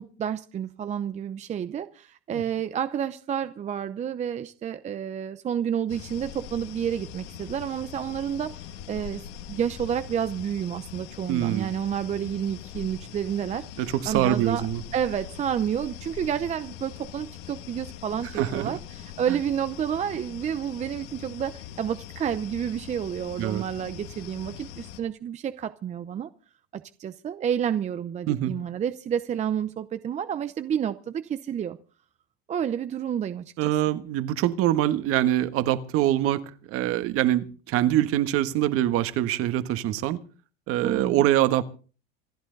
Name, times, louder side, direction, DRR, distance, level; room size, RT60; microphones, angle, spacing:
voice 1, 0.0-14.7 14.9-26.3 26.7-31.8 32.5-33.8 40.8-41.3, right 9 dB, 25° right, 0.7 m, -30 dB
sound 1, 5.9-25.0, left 9 dB, 70° left, 2.1 m, -42 dB
voice 2, 11.3-11.7 13.8-14.8 18.4-18.8 23.4-23.6 28.3-28.5 33.6-36.4 36.7-40.2 40.7-41.6, right 13 dB, 45° right, 1.5 m, -24 dB
27.0 x 11.0 x 4.0 m
supercardioid pair, 140°, 30 cm